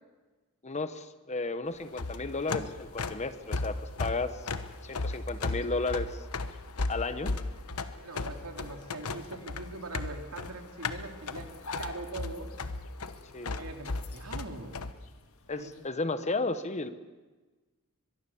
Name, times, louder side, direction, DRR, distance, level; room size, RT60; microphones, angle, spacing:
voice 1, 0.6-4.4 4.8-6.2 6.9-7.3 13.3-13.6 15.5-16.9, left 3 dB, 30° left, 11 dB, 1.1 m, -33 dB
sound 1, 1.6-15.9, left 3 dB, 70° left, 1.9 m, -53 dB
sound 2, 1.8-14.9, left 3 dB, 90° left, 1.1 m, -35 dB
voice 2, 8.0-12.5 13.5-14.8 15.6-15.7, right 2 dB, 85° right, 4 dB, 3.0 m, -42 dB
22.5 x 22.0 x 7.2 m, 1.3 s
head